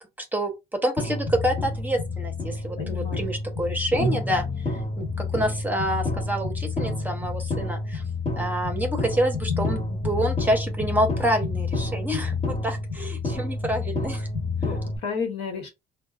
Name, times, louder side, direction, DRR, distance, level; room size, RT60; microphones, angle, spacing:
voice 1, 0.2-8.0 8.4-14.3, right 1 dB, 10° right, 0.8 m, -27 dB
sound 1, 1.0-15.0, left 3 dB, 35° left, 1.2 m, -29 dB
voice 2, 2.8-3.2 14.6-15.7, left 5 dB, 75° left, 1.2 m, -32 dB
3.7 x 2.2 x 2.4 m
supercardioid pair, 80°, 18 cm